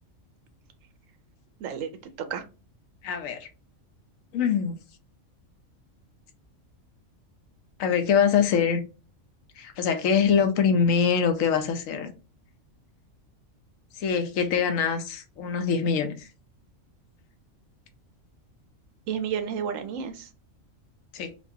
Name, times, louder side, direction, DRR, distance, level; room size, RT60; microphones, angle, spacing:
voice 1, 1.6-2.4 19.1-20.3, right 7 dB, 75° right, 1.0 m, -31 dB
voice 2, 3.0-3.5 4.3-4.8 7.8-8.8 9.6-12.1 14.0-16.2 21.1-21.3, left 6 dB, 90° left, 1.0 m, -24 dB
4.2 x 2.3 x 2.7 m
omnidirectional pair, 1.4 m